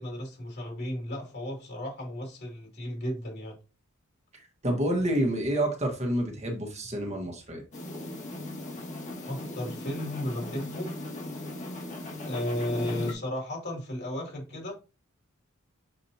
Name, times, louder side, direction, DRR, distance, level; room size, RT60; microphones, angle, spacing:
voice 1, 0.0-3.5 9.3-10.9 12.2-14.7, left 1 dB, 50° left, 2.8 m, -34 dB
voice 2, 4.6-7.6, right 1 dB, 30° right, 1.5 m, -28 dB
sound 1, 7.7-13.1, left 1 dB, 35° left, 1.9 m, -38 dB
6.8 x 4.9 x 2.8 m
head